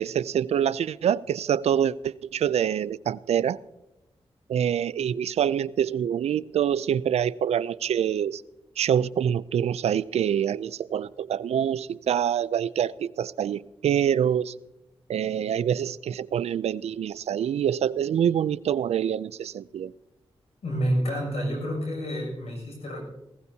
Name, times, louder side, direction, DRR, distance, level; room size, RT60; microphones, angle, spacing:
voice 1, 0.0-3.6 4.5-8.4 8.8-14.5 15.1-19.9, right 9 dB, 85° right, 19 dB, 0.4 m, -26 dB
voice 2, 20.6-23.0, equal, 85° left, 0 dB, 6.6 m, -28 dB
19.5 x 16.5 x 2.8 m, 0.95 s
cardioid pair, 65°, 11 cm